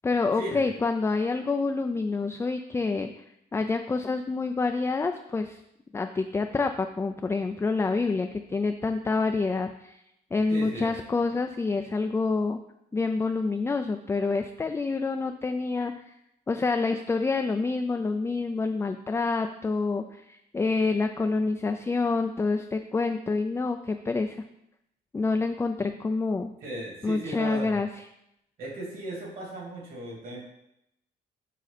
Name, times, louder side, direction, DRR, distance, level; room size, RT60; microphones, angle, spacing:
voice 1, 0.0-3.1 3.5-5.6 5.9-10.0 10.3-12.6 12.9-15.9 16.5-24.4 25.1-26.5 27.0-27.9, left 3 dB, 15° left, 5 dB, 0.4 m, -27 dB
voice 2, 10.5-10.9 26.6-27.7 28.6-30.4, right 1 dB, 55° right, -2 dB, 2.9 m, -36 dB
7.5 x 6.3 x 4.2 m, 0.80 s
cardioid pair, 145°, 17 cm